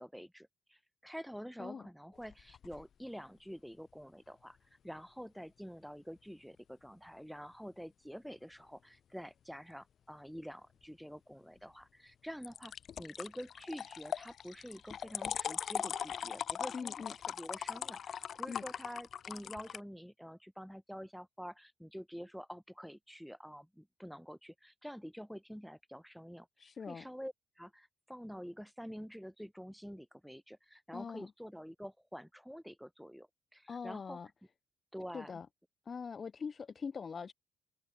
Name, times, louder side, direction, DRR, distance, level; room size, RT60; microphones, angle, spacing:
voice 1, 0.0-4.6 4.8-26.5 26.9-34.2 34.9-35.4, equal, ahead, 6.8 m, -48 dB
sound 1, 2.2-2.8 12.4-19.8, left 8 dB, 45° left, 1.8 m, -40 dB
voice 2, 16.7-17.1 18.5-18.6 26.6-27.1 30.9-31.3 33.7-34.3 35.1-35.5 35.9-37.3, left 5 dB, 30° left, 1.9 m, -42 dB
open air
cardioid pair, 160°, 0 cm